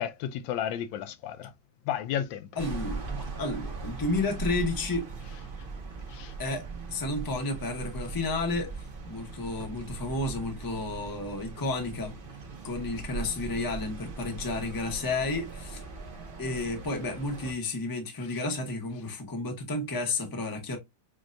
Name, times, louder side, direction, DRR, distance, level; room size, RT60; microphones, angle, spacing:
voice 1, 0.0-1.5 1.9-2.5 6.1-6.3, left 10 dB, 85° left, 1.3 m, -32 dB
voice 2, 2.5-5.1 6.4-12.1 12.6-15.8 16.4-20.8, left 2 dB, 30° left, 0.4 m, -32 dB
sound 1, 2.6-17.5, right 4 dB, 75° right, 0.4 m, -39 dB
6.2 x 2.1 x 2.4 m
omnidirectional pair, 2.0 m